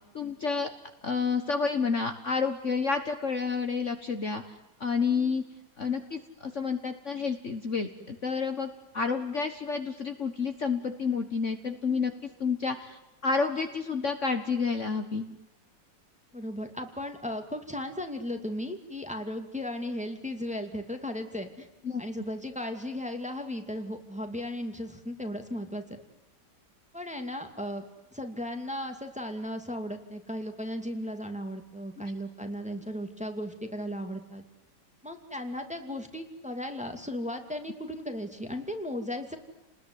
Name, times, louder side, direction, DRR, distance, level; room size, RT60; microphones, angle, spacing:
voice 1, 0.1-0.7 1.0-4.4 4.8-5.4 5.8-12.1 12.4-15.3 21.8-22.0, left 5 dB, 45° left, 7 dB, 1.7 m, -29 dB
voice 2, 16.3-21.7 22.0-26.0 26.9-27.8 28.1-34.4 35.0-39.4, left 1 dB, 5° right, 5 dB, 2.4 m, -36 dB
29.5 x 20.5 x 9.7 m, 1.0 s
omnidirectional pair, 1.9 m